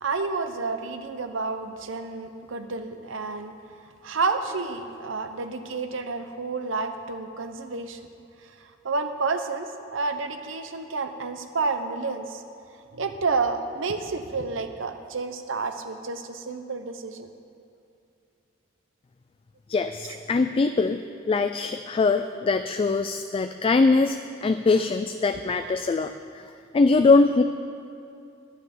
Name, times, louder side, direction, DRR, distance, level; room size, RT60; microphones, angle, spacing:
voice 1, 0.0-3.5 4.0-8.0 8.4-12.4 12.9-17.3 20.0-20.2, right 4 dB, 85° right, 8 dB, 0.8 m, -30 dB
voice 2, 19.7-21.0 21.3-26.4 26.7-27.4, left 3 dB, 30° left, 9 dB, 0.3 m, -22 dB
10.5 x 9.1 x 6.9 m, 2.6 s
head